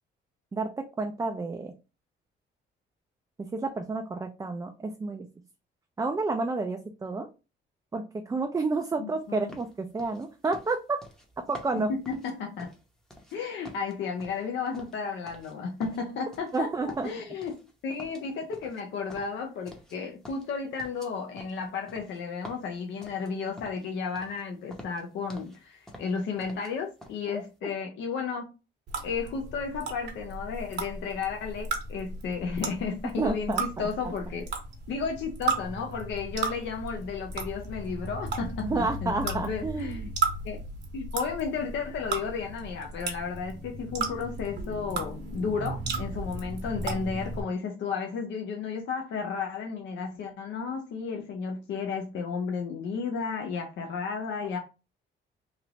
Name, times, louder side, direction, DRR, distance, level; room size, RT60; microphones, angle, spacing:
voice 1, 0.5-1.7 3.4-5.3 6.0-7.3 7.9-11.0 11.5-11.9 16.5-17.1 27.3-27.7 33.2-33.6 34.0-34.1 38.6-40.1, right 3 dB, 15° right, 0.4 m, -30 dB
voice 2, 9.0-9.6 11.9-12.7 13.3-17.5 17.8-28.5 29.0-34.5 34.9-40.1 40.4-40.6 40.9-54.6, left 5 dB, 70° left, 0.6 m, -33 dB
sound 1, 9.5-13.4 13.6-15.5 15.8-16.6 16.9-17.7 18.0-20.0 20.2-23.9 24.2-24.4 24.7-25.6 25.9-26.7 27.0-27.2, equal, 5° left, 0.7 m, -48 dB
sound 2, 28.9-47.4, right 4 dB, 60° right, 0.9 m, -35 dB
3.2 x 2.5 x 2.9 m
cardioid pair, 115°, 19 cm